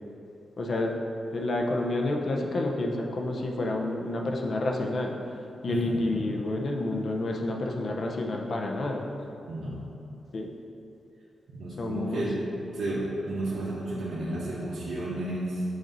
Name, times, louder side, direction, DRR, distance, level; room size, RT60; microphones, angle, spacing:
voice 1, 0.6-1.0 1.3-5.2 5.6-9.1 10.3-10.5 11.8-12.3, left 2 dB, 50° left, 1 dB, 0.6 m, -29 dB
voice 2, 5.7-6.2 9.5-9.8 11.5-12.4 12.7-15.6, right 1 dB, 80° right, -8 dB, 0.9 m, -32 dB
7.8 x 2.7 x 5.3 m, 2.7 s
wide cardioid pair, 130°, 0 cm